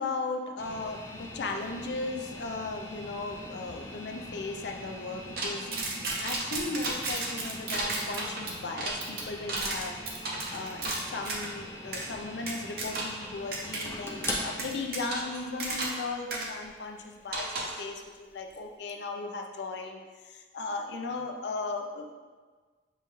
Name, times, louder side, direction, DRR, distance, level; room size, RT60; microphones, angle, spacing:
voice 1, 0.0-5.7 6.2-10.0 10.5-22.1, left 3 dB, 75° left, 4 dB, 0.4 m, -36 dB
sound 1, 0.6-18.7, left 1 dB, 15° left, 0.4 m, -43 dB
sound 2, 5.4-11.5 11.9-12.1 12.5-13.2 13.5-13.8 14.2-16.0 16.3-16.5 17.3-17.8, right 2 dB, 55° right, 0.7 m, -33 dB
6.9 x 2.3 x 3.0 m, 1.4 s
head